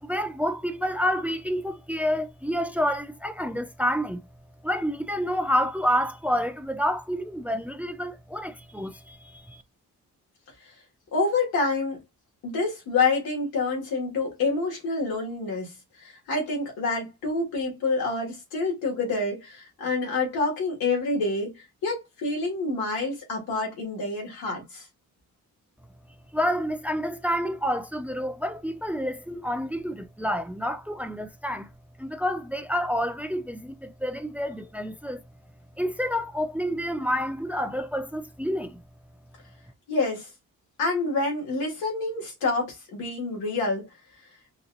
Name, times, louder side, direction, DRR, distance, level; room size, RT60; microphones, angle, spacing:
voice 1, 0.0-4.2 4.6-9.6 26.3-31.7 32.0-35.2 35.8-38.8, equal, 5° right, 0.6 m, -28 dB
voice 2, 11.1-12.0 12.4-24.9 39.9-40.3 40.8-43.9, left 3 dB, 90° left, 1.8 m, -27 dB
4.1 x 2.8 x 2.5 m
supercardioid pair, 50°, 35 cm